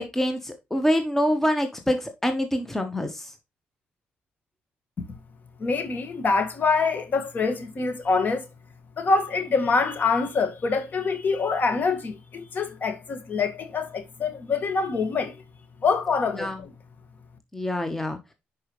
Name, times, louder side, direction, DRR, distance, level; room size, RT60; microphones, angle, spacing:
voice 1, 0.0-3.3 16.3-16.6 17.5-18.2, equal, 10° left, 1.1 m, -25 dB
voice 2, 5.6-8.5 9.0-15.3 15.8-16.7, left 4 dB, 45° left, 1.8 m, -25 dB
10.0 x 4.9 x 3.1 m
cardioid pair, 100°, 4 cm